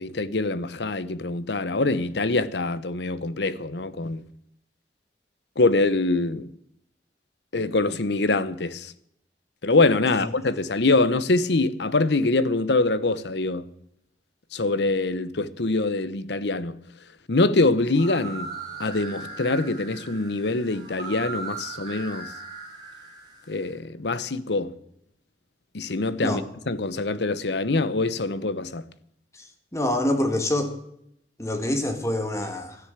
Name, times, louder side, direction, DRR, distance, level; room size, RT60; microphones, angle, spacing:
voice 1, 0.0-4.2 5.6-6.5 7.5-8.9 9.6-13.7 14.5-16.8 17.3-18.5 18.8-22.3 23.5-24.7 25.7-26.4 26.7-28.8, left 2 dB, 75° left, 0.9 m, -24 dB
sound 1, 17.9-23.7, right 3 dB, 25° right, 5.4 m, -39 dB
voice 2, 29.7-30.8 31.4-32.8, left 1 dB, 15° left, 1.8 m, -26 dB
13.5 x 10.0 x 8.0 m
head